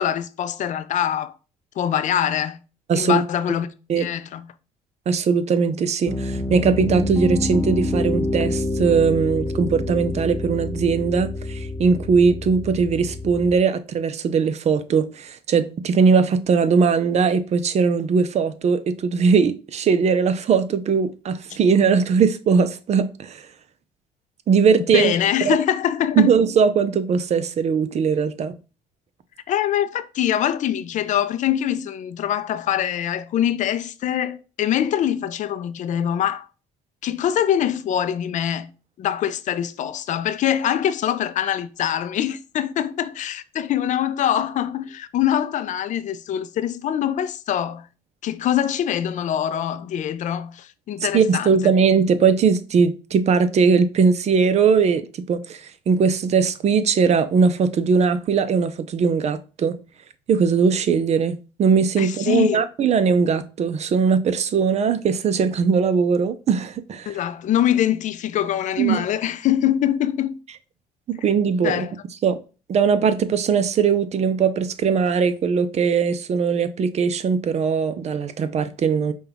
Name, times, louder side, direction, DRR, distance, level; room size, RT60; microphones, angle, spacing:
voice 1, 0.0-1.3 1.8-2.6 2.9-3.7 4.0-4.5 24.9-26.3 29.5-36.5 37.0-38.7 39.0-47.9 48.2-51.5 62.0-62.6 67.1-70.4 71.6-71.9, left 10 dB, 55° left, 0.4 m, -23 dB
voice 2, 2.9-3.2 3.9-4.1 5.1-23.5 24.5-25.1 25.4-25.6 26.2-28.6 51.1-59.8 60.3-67.2 68.8-69.1 71.1-71.9 72.2-72.4 72.7-79.1, right 5 dB, 45° right, 0.5 m, -20 dB
Piano, 6.1-13.6, left 1 dB, 5° left, 0.6 m, -27 dB
5.3 x 2.3 x 3.5 m
supercardioid pair, 75°, 15 cm